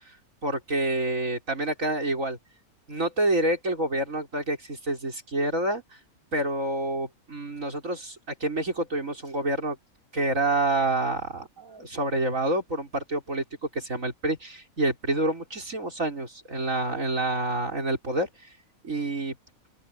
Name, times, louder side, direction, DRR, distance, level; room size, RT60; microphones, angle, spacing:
voice 1, 0.4-2.4 2.9-6.0 6.3-9.8 10.1-13.4 13.7-18.3 18.8-19.4, right 2 dB, 60° right, 5.5 m, -28 dB
open air
omnidirectional pair, 1.6 m